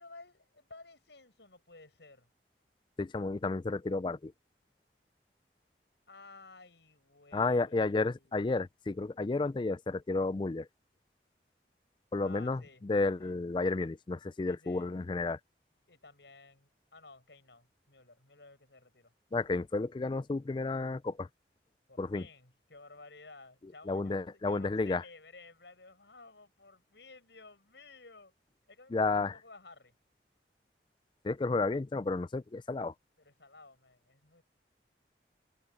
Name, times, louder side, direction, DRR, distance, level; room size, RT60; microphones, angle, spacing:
voice 1, 0.0-2.3 6.1-8.4 12.2-12.8 13.2-13.4 14.4-15.0 15.9-19.1 21.9-28.3 28.7-29.9 33.2-34.4, left 3 dB, 80° left, 6.2 m, -55 dB
voice 2, 3.0-4.3 7.3-10.7 12.1-15.4 19.3-21.3 22.0-22.3 23.9-25.0 28.9-29.4 31.2-32.9, left 3 dB, 25° left, 0.3 m, -32 dB
head